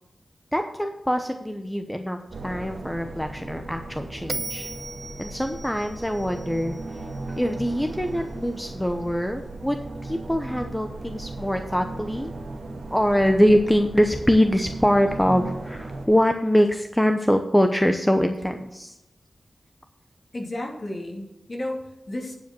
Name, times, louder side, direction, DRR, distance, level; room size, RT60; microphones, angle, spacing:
voice 1, 0.5-4.7 5.2-6.8 7.3-12.3 12.9-19.0, equal, 5° left, 5 dB, 0.8 m, -23 dB
sound 1, 2.3-16.1, right 2 dB, 85° right, 1.5 m, -37 dB
Bell, 4.3-7.5, right 3 dB, 45° right, 0.6 m, -37 dB
voice 2, 20.3-22.3, left 1 dB, 40° left, 0 dB, 2.5 m, -33 dB
10.0 x 5.0 x 7.6 m, 0.87 s
wide cardioid pair, 70°, 0 cm